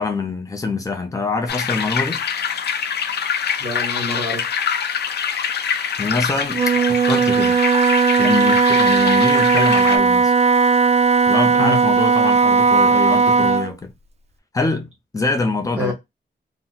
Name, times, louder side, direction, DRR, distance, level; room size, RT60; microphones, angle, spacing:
voice 1, 0.0-2.2 6.0-7.6 8.2-10.3 11.3-13.9 14.5-15.9, left 3 dB, 20° left, 0.6 m, -24 dB
sound 1, 1.5-10.0, left 7 dB, 75° left, 0.5 m, -24 dB
voice 2, 3.6-4.5 6.0-6.1 11.6-11.8 15.8-15.9, left 1 dB, 10° right, 1.1 m, -27 dB
Wind instrument woodwind instrument, 6.5-13.7, right 5 dB, 40° right, 0.4 m, -16 dB
2.9 x 2.1 x 3.8 m
wide cardioid pair, 180°, 17 cm